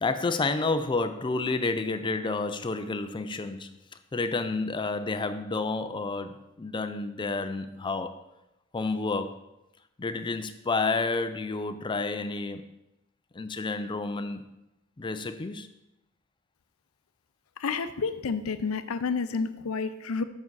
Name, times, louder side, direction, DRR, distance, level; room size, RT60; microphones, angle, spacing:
voice 1, 0.0-3.7 4.1-8.2 8.7-9.4 10.0-12.7 13.3-14.4 15.0-15.7, left 3 dB, 25° left, 10 dB, 0.4 m, -30 dB
voice 2, 17.6-20.2, left 5 dB, 90° left, 12 dB, 0.5 m, -30 dB
7.5 x 5.9 x 4.0 m, 0.92 s
head